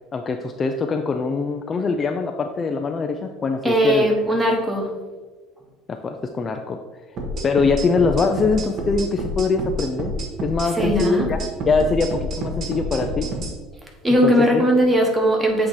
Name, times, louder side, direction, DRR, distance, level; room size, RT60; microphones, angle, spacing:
voice 1, 0.1-4.1 5.9-6.8 7.4-10.1 10.4-11.4 11.7-13.3 14.2-14.6, left 4 dB, 20° left, 5 dB, 0.3 m, -23 dB
voice 2, 3.6-4.9 10.8-11.3 14.0-15.7, equal, 10° right, 1 dB, 1.1 m, -19 dB
sound 1, 7.2-13.5, equal, 40° right, 1.0 m, -28 dB
8.0 x 2.8 x 4.7 m, 1.3 s
cardioid pair, 160°, 0 cm